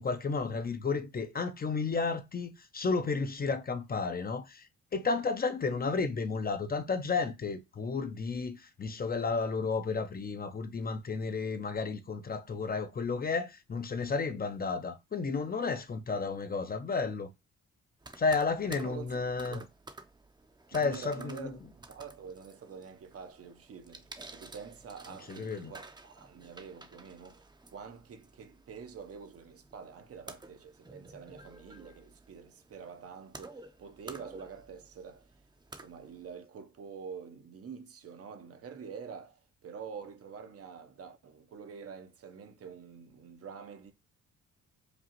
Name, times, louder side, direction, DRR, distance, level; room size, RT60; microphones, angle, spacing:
voice 1, 0.0-17.3 18.2-19.6 20.7-21.5 25.3-25.7, left 4 dB, 30° left, 0.6 m, -32 dB
sound 1, 18.0-36.4, right 2 dB, 15° right, 0.7 m, -52 dB
voice 2, 18.6-19.7 20.7-35.3 35.8-43.9, right 6 dB, 50° right, 0.8 m, -47 dB
5.1 x 2.4 x 2.9 m
cardioid pair, 90°, 30 cm